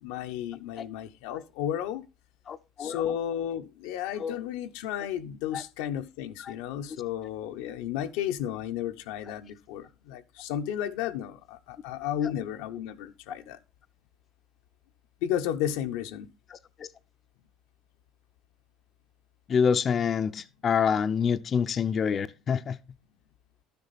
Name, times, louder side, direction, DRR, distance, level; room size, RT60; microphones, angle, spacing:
voice 1, 0.0-2.0 2.8-13.6 15.2-16.3, left 10 dB, 85° left, 0.7 m, -33 dB
voice 2, 2.5-3.1 4.2-4.4 5.5-5.6 6.4-6.5 9.2-9.3 12.2-12.3 19.5-22.8, left 6 dB, 40° left, 0.5 m, -27 dB
12.0 x 6.8 x 4.1 m
supercardioid pair, 100°, 0 cm